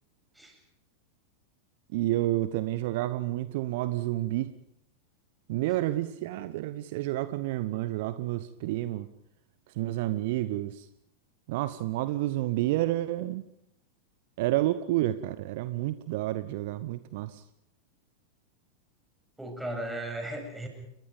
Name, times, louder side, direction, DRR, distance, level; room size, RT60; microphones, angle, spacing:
voice 1, 1.9-4.5 5.5-9.1 9.8-10.9 11.5-13.5 14.4-17.4, right 15 dB, 50° right, 1.0 m, -30 dB
voice 2, 19.4-20.7, right 1 dB, 5° right, 7.7 m, -36 dB
29.5 x 23.0 x 5.3 m
figure-of-eight pair, 90°, 0 cm